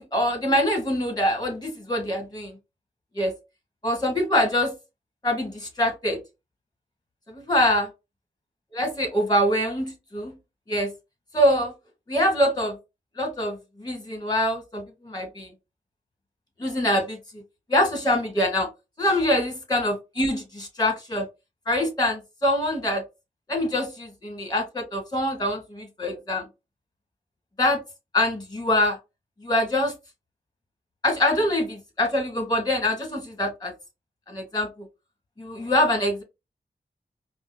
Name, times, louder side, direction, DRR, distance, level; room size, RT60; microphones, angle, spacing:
voice 1, 0.0-2.5 3.2-3.3 3.8-4.7 5.2-6.2 7.3-7.9 8.7-10.3 10.7-10.9 11.3-11.7 12.1-12.8 13.2-15.5 16.6-17.2 17.7-18.7 19.0-21.3 21.7-23.0 23.5-26.4 27.6-27.8 28.1-29.0 29.4-29.9 31.0-33.7 34.3-34.7 35.4-36.2, left 1 dB, 25° left, 3 dB, 1.8 m, -24 dB
4.8 x 2.1 x 2.2 m, 0.24 s
cardioid pair, 50°, 17 cm